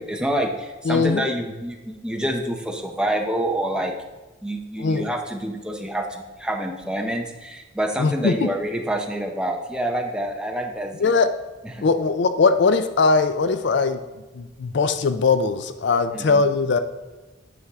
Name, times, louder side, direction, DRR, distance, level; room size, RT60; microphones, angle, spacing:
voice 1, 0.0-3.9 4.4-11.1 11.7-11.8 16.1-16.4, right 1 dB, 5° right, 2 dB, 0.7 m, -27 dB
voice 2, 0.9-1.2 4.8-5.1 8.0-8.5 11.0-11.3 11.8-14.0 14.3-16.8, left 4 dB, 60° left, 10 dB, 0.4 m, -20 dB
9.6 x 7.0 x 3.6 m, 1.2 s
head